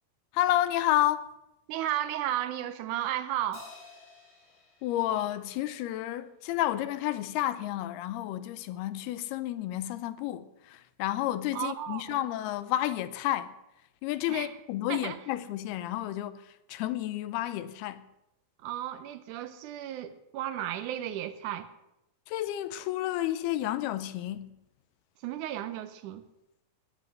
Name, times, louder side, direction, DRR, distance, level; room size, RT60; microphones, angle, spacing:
voice 1, 0.3-1.3 4.8-13.5 14.0-16.4 16.7-18.0 22.3-24.5, left 13 dB, 85° left, 2.7 m, -31 dB
voice 2, 1.7-3.7 11.5-12.3 14.3-14.6 14.9-15.2 18.6-21.7 25.2-26.2, right 12 dB, 75° right, 1.9 m, -34 dB
Crash cymbal, 3.5-6.2, left 4 dB, 55° left, 8.1 m, -53 dB
18.0 x 7.5 x 7.7 m
omnidirectional pair, 4.5 m